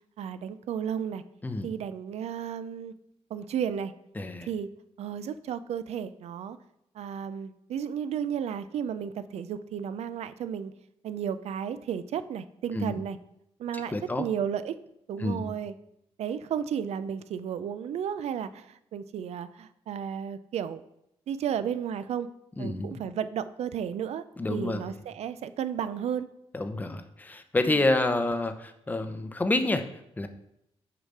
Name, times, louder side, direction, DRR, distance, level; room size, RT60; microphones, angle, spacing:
voice 1, 0.2-1.2 1.6-2.9 3.3-3.9 4.5-4.7 5.0-6.6 6.9-10.7 11.0-13.2 13.6-14.8 15.1-15.7 16.2-20.8 21.3-22.3 22.6-24.2 24.5-26.3 27.6-27.8, right 8 dB, 75° right, 13 dB, 0.4 m, -33 dB
voice 2, 4.2-4.5 12.7-13.0 13.9-14.2 15.2-15.5 22.6-23.0 24.4-24.9 26.5-29.9 30.2-30.3, left 2 dB, 15° left, 8 dB, 0.7 m, -28 dB
6.7 x 4.9 x 5.4 m, 0.80 s
cardioid pair, 115°, 11 cm